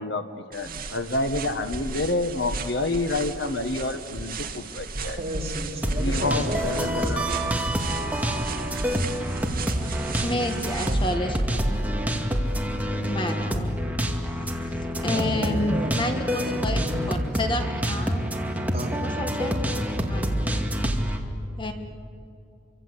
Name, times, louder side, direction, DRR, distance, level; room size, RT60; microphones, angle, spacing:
voice 1, 0.0-5.2 6.0-7.4, left 2 dB, 65° left, 8 dB, 1.6 m, -28 dB
sound 1, 0.5-11.1, right 4 dB, 50° right, 2.1 m, -35 dB
voice 2, 5.2-7.5 10.8-11.0 11.2-11.4 15.1-17.5 18.7-19.0, equal, 35° right, -1 dB, 4.4 m, -33 dB
sound 2, 5.8-21.2, equal, 10° right, 2.2 m, -27 dB
voice 3, 10.2-11.4 11.7-11.8 13.0-13.8 15.0-18.2 19.0-19.6 20.1-20.4 21.6-21.7, left 1 dB, 25° left, 5 dB, 1.6 m, -30 dB
28.0 x 24.5 x 8.2 m, 2.6 s
head